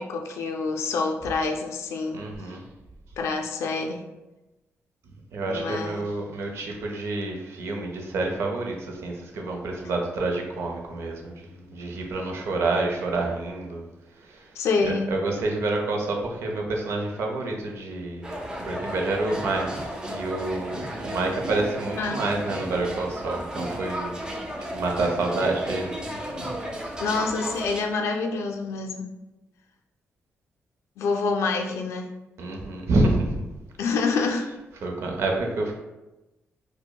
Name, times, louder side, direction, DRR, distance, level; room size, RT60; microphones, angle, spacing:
voice 1, 0.0-2.2 3.2-4.0 5.5-6.0 14.6-15.2 22.0-22.1 27.0-29.2 31.0-32.1 33.8-34.5, left 4 dB, 90° left, 3 dB, 0.4 m, -27 dB
voice 2, 2.1-2.6 5.3-13.8 14.2-14.5 14.8-18.3 18.6-24.2 24.7-26.2 32.4-33.5 34.8-35.8, right 2 dB, 75° right, 1 dB, 0.6 m, -28 dB
sound 1, 18.2-27.8, equal, 15° right, 0.5 m, -34 dB
4.6 x 2.1 x 2.3 m, 1.0 s
cardioid pair, 135°, 5 cm